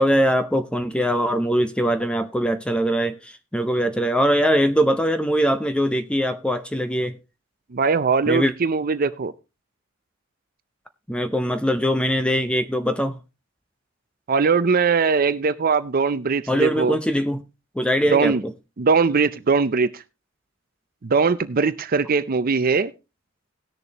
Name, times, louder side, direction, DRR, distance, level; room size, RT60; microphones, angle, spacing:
voice 1, 0.0-7.2 8.3-8.5 11.1-13.2 16.5-17.4 17.8-18.5, equal, 5° left, 0.6 m, -22 dB
voice 2, 7.7-9.3 14.3-17.0 18.1-18.4 18.8-20.0 21.0-22.9, right 4 dB, 45° right, 0.5 m, -20 dB
18.5 x 6.8 x 2.9 m
head